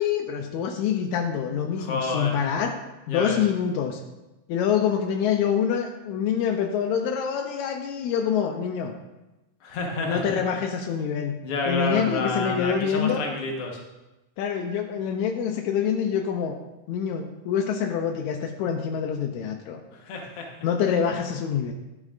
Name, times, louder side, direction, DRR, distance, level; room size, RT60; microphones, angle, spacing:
voice 1, 0.0-2.8 3.1-4.0 4.5-8.9 10.0-11.4 11.7-13.2 14.4-16.6 16.9-19.8 20.6-21.7, left 7 dB, 90° left, 5 dB, 1.7 m, -26 dB
voice 2, 1.8-2.4 3.1-3.4 9.6-10.4 11.4-13.8 19.9-20.5, left 3 dB, 55° left, 0 dB, 1.8 m, -29 dB
11.5 x 9.0 x 2.5 m, 1.0 s
omnidirectional pair, 3.9 m